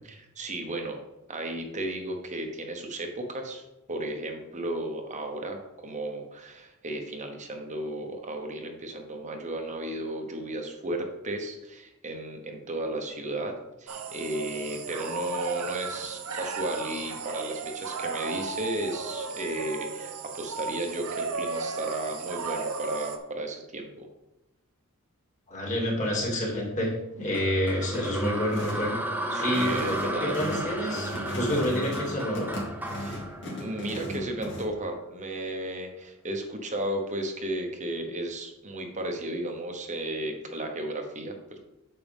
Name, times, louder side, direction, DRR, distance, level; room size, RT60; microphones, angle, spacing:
voice 1, 0.0-1.0 1.3-3.6 3.9-24.1 29.3-30.4 33.0-41.6, right 1 dB, 35° right, 3 dB, 1.1 m, -34 dB
sound 1, 13.9-23.2, right 4 dB, 75° right, 0.8 m, -35 dB
voice 2, 25.5-29.0 29.4-32.5, left 1 dB, 35° left, -2 dB, 2.5 m, -28 dB
sound 2, 27.3-34.5, right 1 dB, 10° right, 0.8 m, -34 dB
sound 3, 28.5-28.9 29.4-34.6, equal, 55° left, 2.1 m, -36 dB
8.9 x 6.8 x 3.6 m, 0.92 s
head